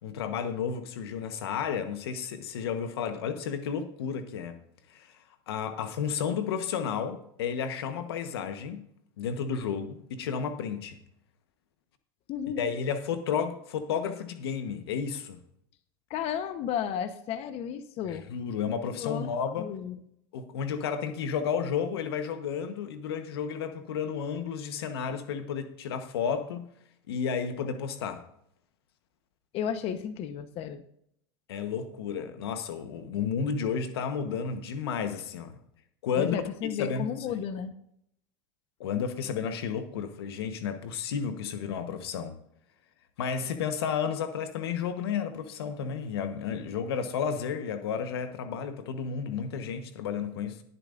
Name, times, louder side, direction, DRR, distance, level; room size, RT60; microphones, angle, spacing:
voice 1, 0.0-4.6 4.9-5.1 5.5-8.8 9.2-11.0 12.6-15.4 18.1-19.7 20.3-26.7 27.1-28.2 31.5-35.6 36.0-36.4 36.8-37.4 38.8-42.3 43.2-50.6, left 7 dB, 90° left, 1.2 m, -32 dB
voice 2, 12.3-12.7 16.1-18.3 18.9-20.0 29.5-30.8 36.2-37.7, left 8 dB, 55° left, 1.0 m, -33 dB
17.5 x 8.8 x 2.6 m
supercardioid pair, 105°, 13 cm